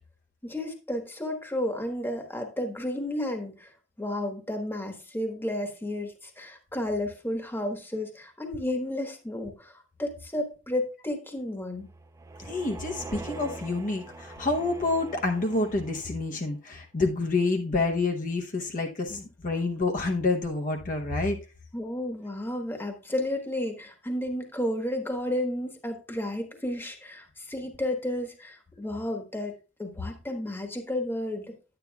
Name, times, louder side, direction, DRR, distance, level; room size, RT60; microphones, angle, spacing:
voice 1, 0.4-3.7 4.0-11.9 21.7-29.5 29.8-31.5, left 1 dB, 10° left, 4 dB, 1.2 m, -32 dB
sound 1, 11.7-16.4, right 2 dB, 15° right, 0.4 m, -43 dB
voice 2, 12.4-21.4, left 3 dB, 45° left, 2 dB, 0.8 m, -28 dB
10.5 x 8.9 x 2.3 m, 0.31 s
head